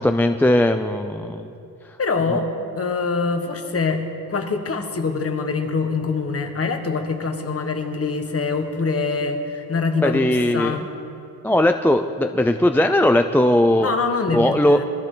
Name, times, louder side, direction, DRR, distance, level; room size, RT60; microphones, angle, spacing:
voice 1, 0.0-1.5 10.0-10.9 11.4-13.9 14.3-14.8, left 1 dB, 5° left, 6 dB, 0.4 m, -18 dB
voice 2, 2.0-2.5 2.8-4.0 4.3-10.9 13.8-14.8, left 4 dB, 35° left, 5 dB, 1.6 m, -24 dB
23.0 x 14.0 x 3.9 m, 2.6 s
cardioid pair, 110°, 39 cm